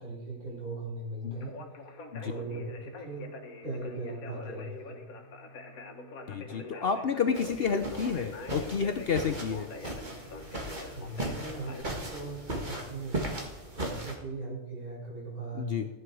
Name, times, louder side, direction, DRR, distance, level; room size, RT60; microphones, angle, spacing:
voice 1, 0.0-1.5 1.8-3.3 3.6-5.0 10.4-10.5 10.9-13.3 13.7-15.8, right 2 dB, 75° right, -3 dB, 5.0 m, -39 dB
Conversation, 1.3-11.8, left 3 dB, 70° left, 1.6 m, -45 dB
voice 2, 6.3-9.7 15.5-15.9, left 6 dB, 55° left, 7 dB, 0.7 m, -30 dB
sound 1, 7.3-14.2, right 1 dB, 30° right, 1.9 m, -37 dB
14.0 x 8.1 x 4.7 m, 1.1 s
omnidirectional pair, 1.6 m